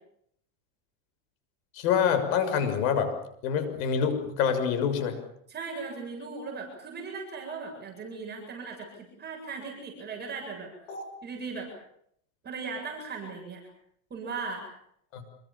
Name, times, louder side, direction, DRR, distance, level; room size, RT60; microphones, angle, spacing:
voice 1, 1.7-3.1 3.4-5.2 10.9-11.1 15.1-15.2, left 7 dB, 70° left, 9 dB, 6.7 m, -26 dB
voice 2, 5.5-10.7 11.2-11.7 12.4-13.6 14.1-14.6, right 4 dB, 25° right, 0 dB, 7.9 m, -38 dB
27.0 x 24.0 x 7.3 m, 0.71 s
supercardioid pair, 135°, 42 cm